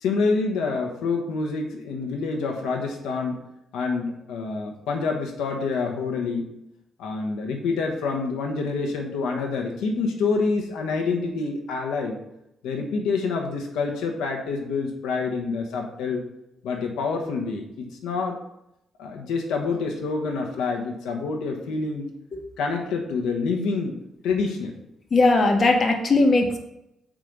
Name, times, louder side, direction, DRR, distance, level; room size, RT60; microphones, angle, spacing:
voice 1, 0.0-3.4 3.7-6.5 7.0-12.2 12.6-16.2 16.6-18.4 19.0-22.1 22.6-24.0 24.2-24.7, left 4 dB, 90° left, 2 dB, 1.2 m, -27 dB
voice 2, 25.1-26.6, left 2 dB, 40° left, 3 dB, 1.5 m, -18 dB
7.5 x 5.1 x 5.3 m, 0.82 s
cardioid pair, 90°, 0 cm